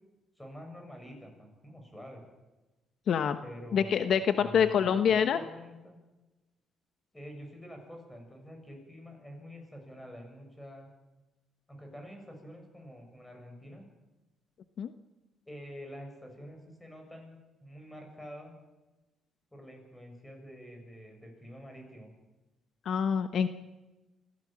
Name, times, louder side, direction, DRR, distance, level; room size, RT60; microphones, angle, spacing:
voice 1, 0.4-2.2 3.4-6.0 7.1-10.9 11.7-13.8 15.5-18.5 19.5-22.1, equal, 10° left, 3 dB, 7.3 m, -47 dB
voice 2, 3.1-3.4 3.7-5.4 14.8-14.9 22.8-23.5, left 7 dB, 60° left, 10 dB, 1.0 m, -26 dB
25.5 x 16.0 x 7.6 m, 1.1 s
cardioid pair, 105°, 0 cm